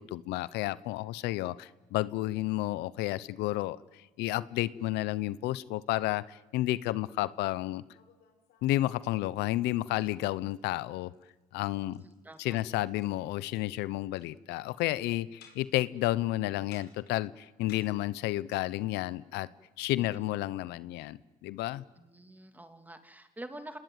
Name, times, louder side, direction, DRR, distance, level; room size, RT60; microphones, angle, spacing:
voice 1, 0.0-7.8 8.6-11.1 11.5-12.0 12.4-19.5 19.8-21.8, left 16 dB, 90° left, 18 dB, 0.8 m, -31 dB
sound 1, 7.9-9.6 10.0-10.2 10.5-10.7 11.0-11.3 11.6-13.6 13.8-14.3 15.4-15.9 16.7-17.8, left 8 dB, 75° left, 5.1 m, -58 dB
voice 2, 11.9-12.6 20.0-20.1 22.0-23.8, right 1 dB, 10° right, 8 dB, 2.8 m, -47 dB
27.5 x 20.0 x 9.4 m, 1.1 s
cardioid pair, 110°, 17 cm